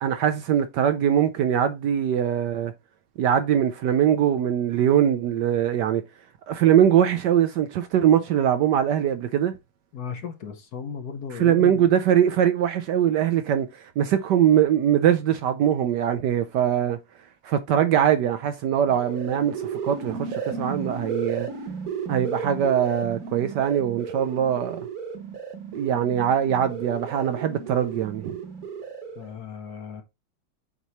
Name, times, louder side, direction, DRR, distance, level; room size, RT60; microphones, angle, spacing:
voice 1, 0.0-2.7 3.2-6.0 6.5-9.5 11.4-17.0 17.4-21.5 22.1-24.9 25.7-28.4, right 9 dB, 70° right, 1.1 m, -22 dB
voice 2, 9.9-11.9 29.2-30.0, left 6 dB, 60° left, 1.2 m, -35 dB
sound 1, 18.8-29.3, right 6 dB, 50° right, 1.6 m, -34 dB
8.1 x 3.1 x 4.1 m
omnidirectional pair, 2.2 m